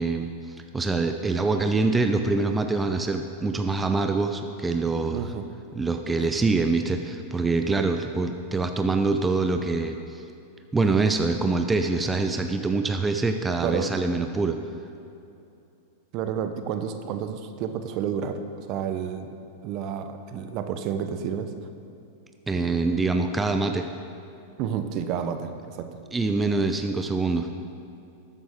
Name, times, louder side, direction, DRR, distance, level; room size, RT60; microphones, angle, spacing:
voice 1, 0.0-5.3 5.7-10.2 10.7-14.6 22.5-23.9 26.1-27.5, right 3 dB, 15° right, 6 dB, 0.6 m, -25 dB
voice 2, 5.1-5.4 13.6-13.9 16.1-18.4 18.7-19.3 19.6-21.5 24.6-25.9, right 8 dB, 50° right, 9 dB, 0.8 m, -30 dB
12.5 x 9.2 x 3.6 m, 2.7 s
hypercardioid pair, 105°, 0 cm